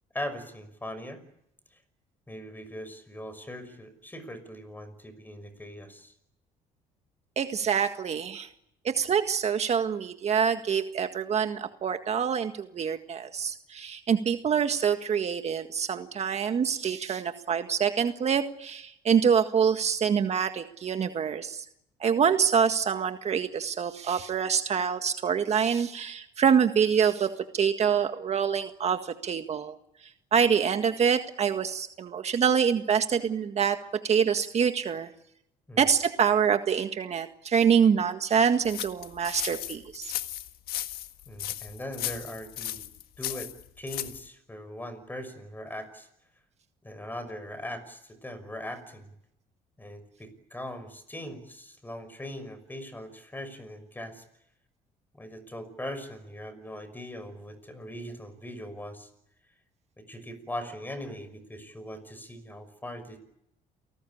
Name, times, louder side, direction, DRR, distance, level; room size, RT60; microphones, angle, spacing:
voice 1, 0.1-1.2 1.7-1.8 2.3-6.1 35.7-35.9 41.3-42.8 43.2-43.5 43.8-46.1 46.8-49.1 49.8-54.2 55.1-59.1 60.0-63.2, left 1 dB, 10° left, 13 dB, 6.0 m, -40 dB
voice 2, 7.3-8.5 8.8-21.6 22.0-29.8 30.0-33.8 34.0-35.1 35.8-40.2, right 7 dB, 45° right, 7 dB, 1.8 m, -26 dB
sound 1, 38.6-44.3, left 13 dB, 80° left, 1.7 m, -36 dB
29.0 x 19.0 x 8.8 m, 0.79 s
cardioid pair, 105°, 15 cm